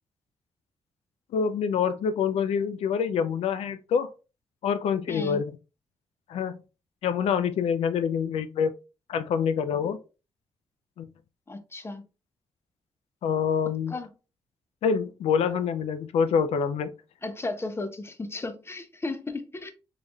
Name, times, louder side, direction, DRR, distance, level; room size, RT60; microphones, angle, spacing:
voice 1, 1.3-4.1 4.6-5.5 6.3-6.6 7.0-8.7 9.1-10.0 11.0-11.1 13.2-13.9 14.8-16.9, left 6 dB, 90° left, 0.4 m, -26 dB
voice 2, 5.1-5.4 11.5-12.0 13.9-14.1 17.2-19.7, left 2 dB, 25° left, 0.6 m, -34 dB
3.9 x 3.2 x 2.3 m
cardioid pair, 85°, 10 cm